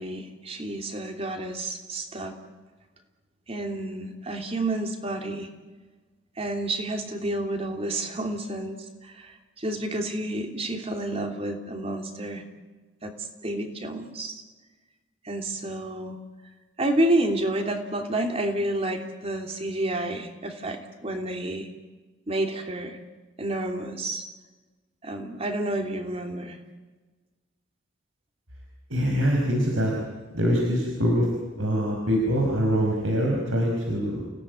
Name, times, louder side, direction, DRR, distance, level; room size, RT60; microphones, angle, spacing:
voice 1, 0.0-2.4 3.5-5.5 6.4-12.4 13.0-14.4 15.2-16.2 16.8-21.7 22.3-23.0 23.4-24.2 25.0-26.6, right 1 dB, 30° right, 4 dB, 3.0 m, -30 dB
voice 2, 28.9-29.9 30.3-31.3 31.6-34.3, equal, 90° right, 0 dB, 5.4 m, -24 dB
29.5 x 17.5 x 9.6 m, 1.3 s
head